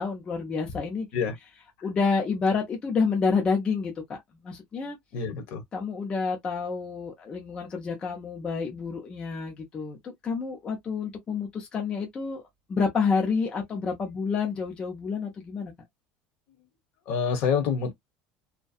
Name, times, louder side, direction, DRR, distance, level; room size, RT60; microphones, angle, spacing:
voice 1, 0.0-1.1 1.8-4.2 4.4-5.0 5.7-12.4 12.7-15.7, left 5 dB, 20° left, 0.5 m, -28 dB
voice 2, 5.1-5.6 17.1-17.9, left 6 dB, 55° left, 0.9 m, -26 dB
2.6 x 2.1 x 2.3 m
cardioid pair, 170°, 4 cm